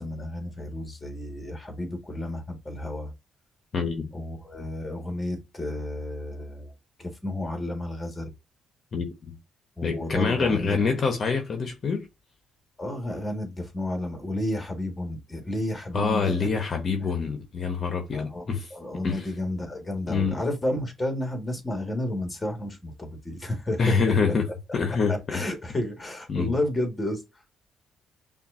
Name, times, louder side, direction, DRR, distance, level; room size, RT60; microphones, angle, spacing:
voice 1, 0.0-3.1 4.1-6.7 7.0-8.3 9.8-10.8 12.8-16.6 17.0-17.1 18.1-18.4 18.7-23.8 25.1-27.2, left 1 dB, 15° left, 1.6 m, -31 dB
voice 2, 3.7-4.1 8.9-9.3 9.8-12.1 15.9-18.7 19.0-19.3 20.1-20.5 23.8-24.5 24.7-25.4 26.3-26.5, left 5 dB, 45° left, 0.9 m, -26 dB
5.8 x 2.5 x 2.5 m
cardioid pair, 90°, 0 cm